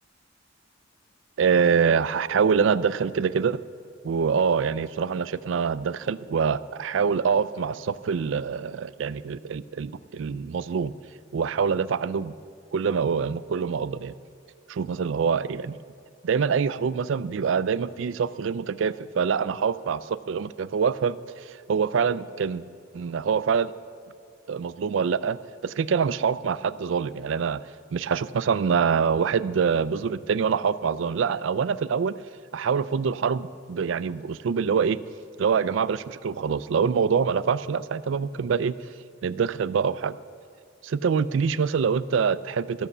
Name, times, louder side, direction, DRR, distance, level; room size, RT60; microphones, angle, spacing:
voice 1, 1.4-3.6 4.0-10.9 11.3-12.3 12.7-14.1 14.7-15.8 16.2-20.0 20.3-22.6 22.9-23.7 24.5-27.6 27.9-32.1 32.5-35.0 35.4-38.7 39.2-40.2 40.8-42.9, right 6 dB, 70° right, 16 dB, 0.4 m, -25 dB
14.5 x 7.1 x 6.6 m, 2.4 s
head